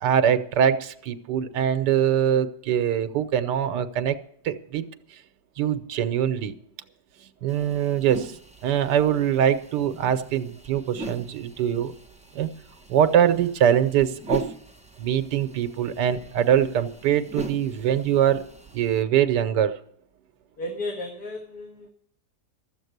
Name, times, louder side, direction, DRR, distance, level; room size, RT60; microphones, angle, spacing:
voice 1, 0.0-4.2 4.4-4.8 5.6-6.6 7.4-8.4 8.6-11.9 12.3-12.5 12.9-14.5 15.0-18.4 18.7-19.8, right 9 dB, 85° right, 10 dB, 1.4 m, -23 dB
sound 1, 7.5-19.0, right 1 dB, 5° right, 0.5 m, -41 dB
voice 2, 20.6-21.9, left 1 dB, 65° left, 1 dB, 2.1 m, -34 dB
13.5 x 7.5 x 8.0 m, 0.65 s
omnidirectional pair, 1.8 m